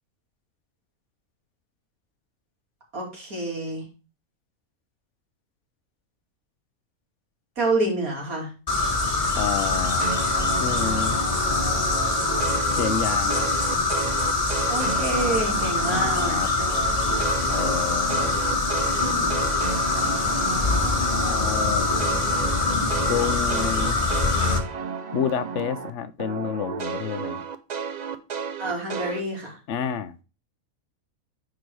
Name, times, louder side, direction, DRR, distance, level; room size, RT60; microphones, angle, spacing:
voice 1, 2.9-3.9 7.6-8.5 14.7-16.4 28.6-29.6, right 2 dB, 85° right, -2 dB, 3.3 m, -27 dB
sound 1, 8.7-24.6, left 3 dB, 30° left, 1.2 m, -24 dB
voice 2, 9.4-10.1 10.6-11.2 12.8-13.5 15.9-16.5 17.5-18.4 21.2-21.9 23.1-23.9 25.1-27.4 29.7-30.1, left 7 dB, 65° left, 14 dB, 0.9 m, -29 dB
sound 2, 10.0-16.3 16.6-25.9 26.2-29.2, right 6 dB, 50° right, 0.5 m, -33 dB
9.5 x 3.9 x 4.7 m, 0.32 s
omnidirectional pair, 1.5 m